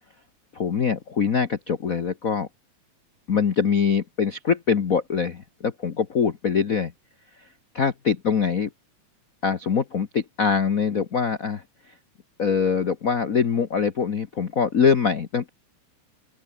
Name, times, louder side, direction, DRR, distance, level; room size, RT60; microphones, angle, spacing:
voice 1, 0.5-2.5 3.3-6.9 7.7-8.7 9.4-11.6 12.4-15.5, left 6 dB, 90° left, 0.7 m, -23 dB
open air
omnidirectional pair, 3.5 m